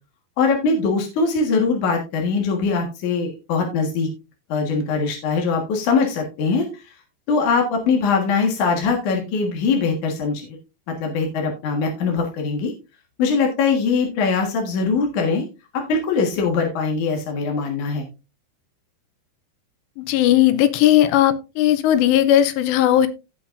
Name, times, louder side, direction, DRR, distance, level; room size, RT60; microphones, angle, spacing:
voice 1, 0.4-4.1 4.5-6.8 7.3-10.6 10.9-12.7 13.2-15.4 15.7-18.1, left 4 dB, 55° left, 1 dB, 2.4 m, -22 dB
voice 2, 20.0-23.1, left 12 dB, 80° left, 12 dB, 2.7 m, -17 dB
16.0 x 5.8 x 2.5 m, 0.28 s
omnidirectional pair, 5.3 m